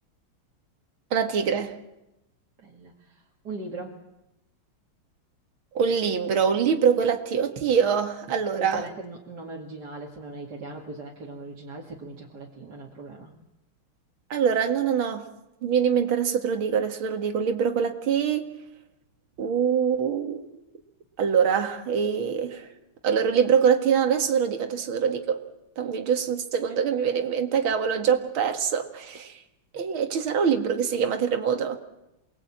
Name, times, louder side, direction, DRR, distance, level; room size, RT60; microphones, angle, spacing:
voice 1, 1.1-1.8 5.7-8.8 14.3-15.2 15.6-18.5 19.4-20.4 21.2-22.7 23.0-25.4 25.8-29.4 29.7-31.8, right 7 dB, 70° right, 2.6 m, -24 dB
voice 2, 2.6-4.0 8.6-13.3, right 3 dB, 50° right, 2.8 m, -39 dB
28.5 x 20.5 x 8.7 m
omnidirectional pair, 2.4 m